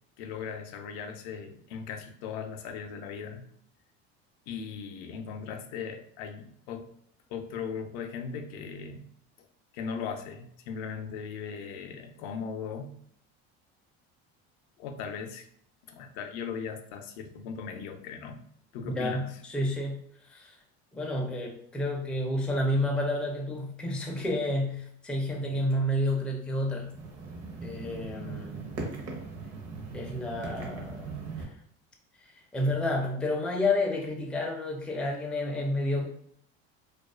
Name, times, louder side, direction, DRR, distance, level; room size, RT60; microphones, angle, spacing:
voice 1, 0.2-3.4 4.5-6.9 7.3-9.0 9.7-12.9 14.8-15.5 15.9-18.4 18.7-19.4, left 6 dB, 75° left, 6 dB, 0.5 m, -38 dB
voice 2, 18.8-20.0 20.3-20.6 20.9-26.9 27.6-28.7 29.9-31.1 31.4-31.5 32.2-36.1, left 1 dB, 5° left, 0 dB, 0.4 m, -30 dB
sound 1, 26.8-31.4, right 4 dB, 55° right, 0.7 m, -39 dB
2.3 x 2.3 x 2.3 m, 0.67 s
supercardioid pair, 110°, 32 cm